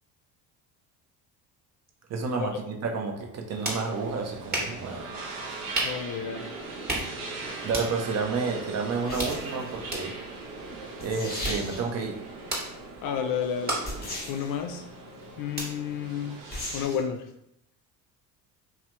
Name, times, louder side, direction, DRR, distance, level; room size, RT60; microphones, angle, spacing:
voice 1, 2.1-5.1 7.6-10.1 11.0-12.1, right 4 dB, 40° right, 3 dB, 0.6 m, -30 dB
sound 1, 3.2-16.9, right 1 dB, 20° right, 1.2 m, -38 dB
sound 2, 3.5-16.8, right 3 dB, 90° right, 0.7 m, -40 dB
voice 2, 5.8-6.5 13.0-13.8 14.3-14.8 15.4-16.4 16.7-17.2, left 8 dB, 50° left, 5 dB, 0.4 m, -31 dB
sound 3, 7.2-7.5 9.0-9.7 10.7-10.8 11.0-12.0 13.8-14.6 16.5-17.0, left 1 dB, 20° left, 1.1 m, -37 dB
2.7 x 2.0 x 3.2 m, 0.80 s
hypercardioid pair, 75°, 42 cm